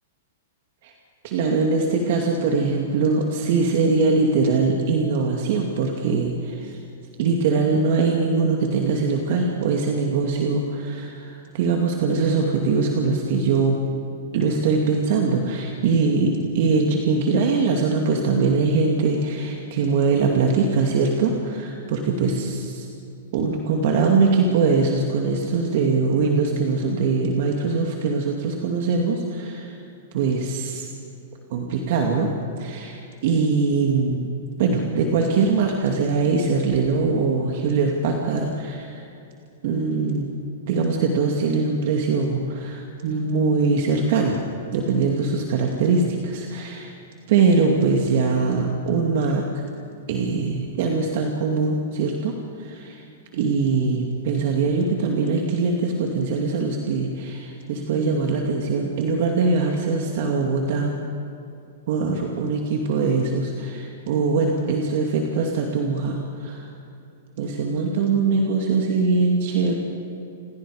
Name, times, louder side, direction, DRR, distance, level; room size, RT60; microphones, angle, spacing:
voice 1, 1.2-6.8 7.2-13.9 14.3-22.9 23.3-29.8 30.1-30.9 31.5-32.3 32.6-34.3 34.6-39.0 39.6-40.3 40.7-44.4 44.7-46.9 47.3-49.5 50.1-53.0 53.3-61.0 61.9-66.7 67.4-69.7, right 4 dB, 55° right, 1 dB, 2.5 m, -22 dB
29.0 x 20.0 x 5.1 m, 2.7 s
hypercardioid pair, 135°, 0 cm